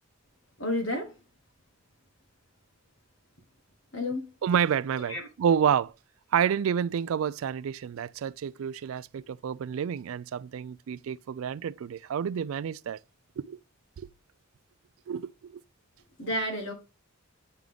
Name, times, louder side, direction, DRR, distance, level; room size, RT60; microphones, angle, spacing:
voice 1, 0.6-1.2 3.9-4.3 5.1-5.3 16.2-16.7, left 1 dB, 60° left, 1.8 m, -31 dB
voice 2, 4.4-5.9 6.3-13.0 13.4-13.6 14.0-14.1 15.1-15.6, right 8 dB, 80° right, 0.3 m, -29 dB
9.1 x 3.6 x 3.6 m
head